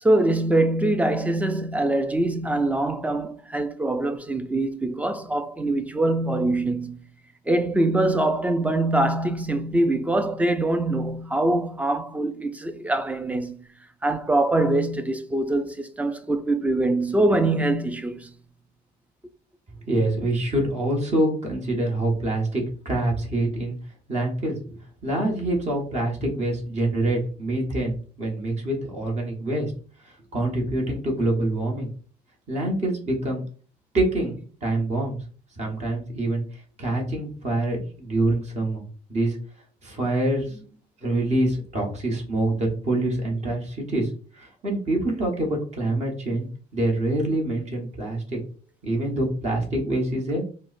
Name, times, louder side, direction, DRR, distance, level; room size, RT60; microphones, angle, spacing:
voice 1, 0.0-7.0 7.5-13.6 14.0-18.3, right 2 dB, 10° right, 0.3 m, -23 dB
voice 2, 19.9-23.8 24.1-29.7 30.0-31.9 32.5-33.4 33.9-35.2 35.6-36.4 36.8-38.8 39.1-39.4 39.8-40.5 41.0-48.4 48.8-50.4, right 1 dB, 40° right, 1.2 m, -26 dB
4.5 x 2.1 x 2.5 m
cardioid pair, 110°, 17 cm